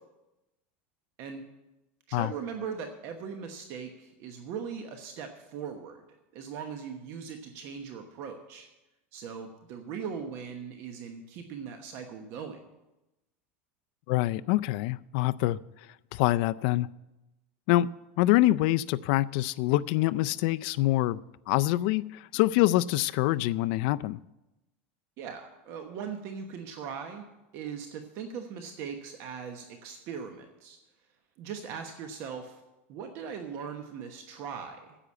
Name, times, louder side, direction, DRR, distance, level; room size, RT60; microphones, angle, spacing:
voice 1, 2.1-6.0 6.3-8.7 9.1-12.6 25.2-27.2 27.5-30.8 31.4-32.6 32.9-35.0, right 6 dB, 45° right, 5 dB, 1.1 m, -39 dB
voice 2, 14.1-15.6 16.1-16.9 17.7-17.9 18.2-21.2 21.5-24.2, left 16 dB, 50° left, 15 dB, 0.4 m, -25 dB
10.0 x 8.0 x 8.5 m, 0.97 s
supercardioid pair, 160°, 7 cm